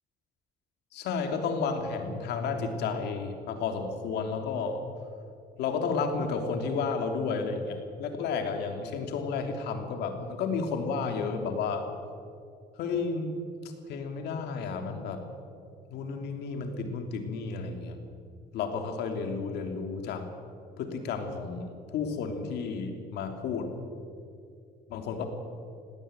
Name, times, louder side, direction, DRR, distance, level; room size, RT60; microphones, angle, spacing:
voice 1, 0.9-4.8 5.6-11.8 12.8-13.4 13.9-15.4 15.9-18.0 18.5-20.3 20.8-23.8 24.9-25.3, left 5 dB, 80° left, 5 dB, 3.1 m, -32 dB
19.5 x 17.5 x 8.9 m, 2.4 s
cardioid pair, 110°, 17 cm